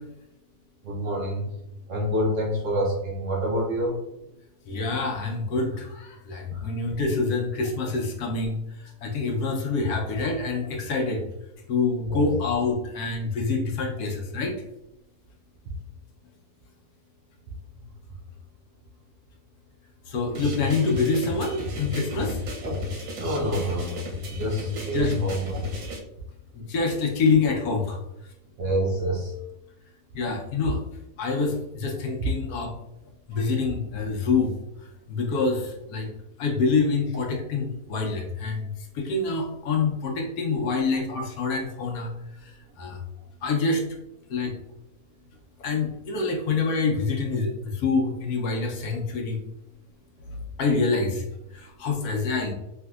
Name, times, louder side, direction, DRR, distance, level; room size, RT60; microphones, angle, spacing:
voice 1, 0.8-1.4 1.9-4.0 6.5-6.6 12.1-12.3 22.6-22.8 23.2-24.0 24.3-25.6 28.6-29.3, right 1 dB, 65° right, -3 dB, 0.8 m, -27 dB
voice 2, 4.7-11.2 11.7-14.5 20.1-22.4 24.9-25.2 26.5-28.0 30.1-30.8 31.2-32.7 33.3-34.5 35.1-36.1 36.4-42.1 42.4-43.0 43.4-43.8 44.3-44.5 45.6-49.4 50.6-51.2 51.5-52.5, left 4 dB, 70° left, 1 dB, 1.1 m, -26 dB
sound 1, 20.3-26.0, left 3 dB, 80° right, 1.3 m, -33 dB
3.4 x 2.7 x 2.3 m, 0.88 s
omnidirectional pair, 1.7 m